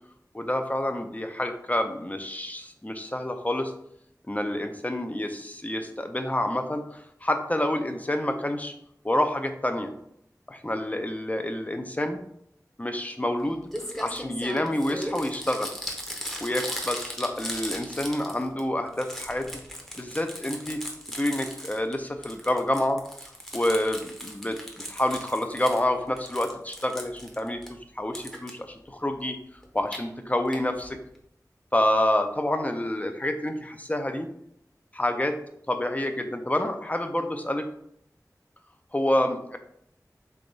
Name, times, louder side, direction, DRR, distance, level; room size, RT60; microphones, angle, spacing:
voice 1, 0.3-3.7 4.3-8.7 9.0-9.9 10.5-12.2 12.8-13.7 14.0-15.7 16.4-19.6 20.0-20.8 21.2-23.0 23.5-24.6 24.9-29.4 29.7-31.0 31.7-34.3 34.9-35.4 35.7-37.7 38.9-39.6, left 1 dB, 25° left, 6 dB, 0.5 m, -28 dB
Crumpling crinkling, 13.4-13.5 13.7-18.6 18.9-21.9 22.2-25.8 26.2-27.7 28.1-28.5 29.6-30.0 30.5-30.6 30.8-30.9 31.1-31.2, equal, 5° left, 0.8 m, -37 dB
3.4 x 3.4 x 3.9 m, 0.72 s
wide cardioid pair, 55°, 7 cm